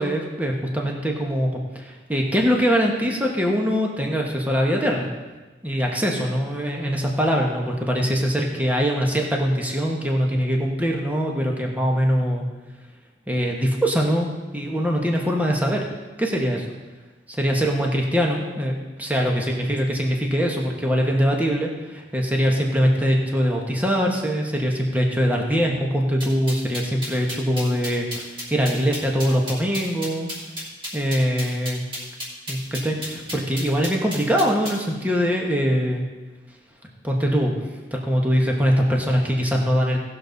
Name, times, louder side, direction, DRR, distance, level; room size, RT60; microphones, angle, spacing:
voice 1, 0.0-5.1 5.6-12.5 13.3-15.9 16.2-16.7 17.3-18.7 19.0-28.3 28.5-30.3 30.9-31.8 32.5-36.0 37.0-37.6 37.9-40.0, equal, 10° right, 0 dB, 1.2 m, -22 dB
sound 1, 26.2-34.8, equal, 25° right, 3.0 m, -33 dB
18.0 x 6.8 x 4.0 m, 1.2 s
head